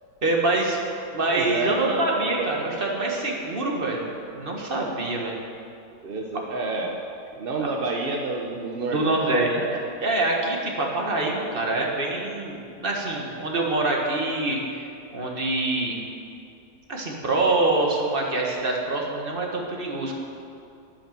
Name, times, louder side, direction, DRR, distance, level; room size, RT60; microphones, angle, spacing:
voice 1, 0.2-0.8 1.1-4.1 4.3-5.4 8.9-9.6 10.0-14.9 15.1-16.0 16.9-20.2, right 2 dB, 30° right, -1 dB, 1.6 m, -25 dB
voice 2, 1.3-2.5 6.0-7.0 7.4-9.2, right 3 dB, 45° right, 0 dB, 0.7 m, -29 dB
10.0 x 9.0 x 7.3 m, 2.5 s
omnidirectional pair, 2.1 m